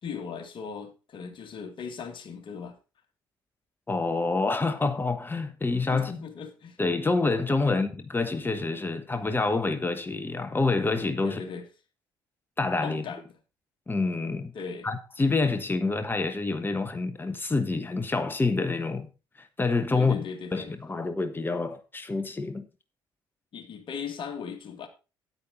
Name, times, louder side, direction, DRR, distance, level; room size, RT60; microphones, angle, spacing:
voice 1, 0.0-2.8 5.9-6.8 7.6-7.8 11.2-11.7 12.8-13.2 14.5-14.9 19.9-20.7 23.5-24.9, left 6 dB, 50° left, 2.1 m, -38 dB
voice 2, 3.9-6.2 6.8-11.5 12.6-13.0 13.9-14.5 14.8-19.1 19.4-20.3 20.5-22.7, left 3 dB, 20° left, 1.3 m, -27 dB
9.6 x 8.8 x 4.1 m
hypercardioid pair, 50°, 11 cm